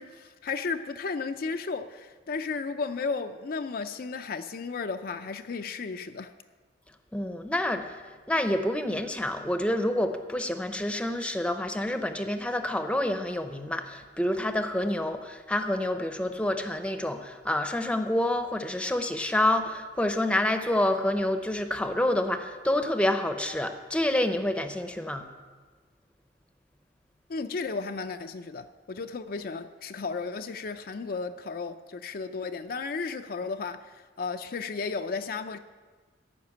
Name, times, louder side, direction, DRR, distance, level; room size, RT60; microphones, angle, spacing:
voice 1, 0.0-6.3 27.3-35.6, left 4 dB, 50° left, 0.4 m, -34 dB
voice 2, 7.1-8.0 8.3-25.3, left 1 dB, 5° left, 0.7 m, -28 dB
14.5 x 5.9 x 8.4 m
head